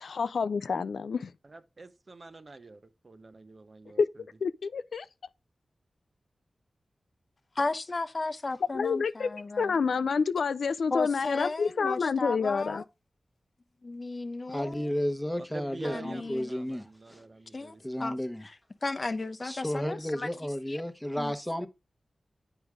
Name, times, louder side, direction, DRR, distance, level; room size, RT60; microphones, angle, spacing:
voice 1, 0.0-1.3 4.0-4.1 4.4-5.1 8.7-9.3 9.6-12.8, left 5 dB, 90° left, 0.3 m, -28 dB
voice 2, 1.4-4.3 15.4-17.8, right 3 dB, 50° right, 0.8 m, -46 dB
voice 3, 7.6-9.8 10.9-12.8 13.8-14.9 15.8-16.5 17.5-18.2 18.4-18.6 18.8-20.3 20.7-20.8 21.1-21.3, left 3 dB, 45° left, 0.6 m, -34 dB
voice 4, 14.5-17.2 17.8-18.5 19.4-21.7, equal, 5° left, 1.0 m, -33 dB
8.0 x 5.0 x 3.4 m
cardioid pair, 60°, 0 cm